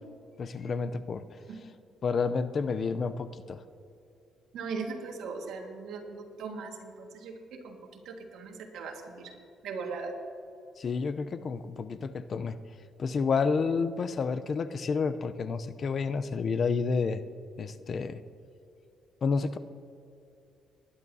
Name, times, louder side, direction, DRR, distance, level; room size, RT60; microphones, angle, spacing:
voice 1, 0.4-1.2 2.0-3.6 10.8-12.6 13.0-17.2 17.6-18.2 19.2-19.6, left 5 dB, 50° left, 13 dB, 0.5 m, -30 dB
voice 2, 4.5-9.3 9.6-10.1, right 4 dB, 80° right, 2 dB, 1.7 m, -39 dB
19.5 x 11.0 x 2.7 m, 2.7 s
cardioid pair, 90°, 0 cm